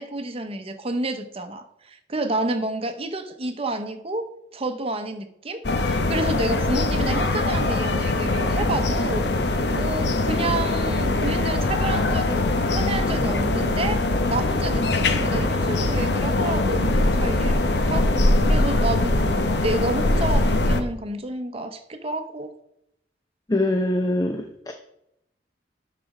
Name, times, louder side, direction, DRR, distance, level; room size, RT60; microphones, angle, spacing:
voice 1, 0.0-22.5, right 2 dB, 35° right, 7 dB, 0.8 m, -30 dB
sound 1, 5.6-20.8, left 2 dB, 65° left, 0.8 m, -22 dB
voice 2, 23.5-24.7, left 1 dB, 20° left, 5 dB, 0.6 m, -23 dB
11.5 x 4.2 x 4.9 m, 0.78 s
head